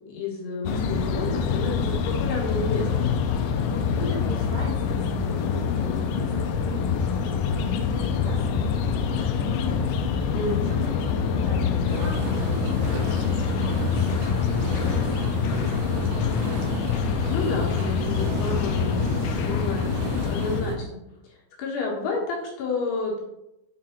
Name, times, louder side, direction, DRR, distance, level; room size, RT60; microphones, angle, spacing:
voice 1, 0.0-3.0 10.3-10.8 17.3-19.1 19.4-20.9 21.2-23.2, left 3 dB, 65° left, -3 dB, 3.0 m, -30 dB
sound 1, 0.7-20.6, left 6 dB, 85° left, 2.5 m, -25 dB
voice 2, 3.7-9.9 10.6-16.8, right 2 dB, 65° right, -7 dB, 1.7 m, -39 dB
sound 2, 11.9-20.8, right 5 dB, 90° right, 2.2 m, -35 dB
8.6 x 3.8 x 4.4 m, 0.89 s
omnidirectional pair, 5.7 m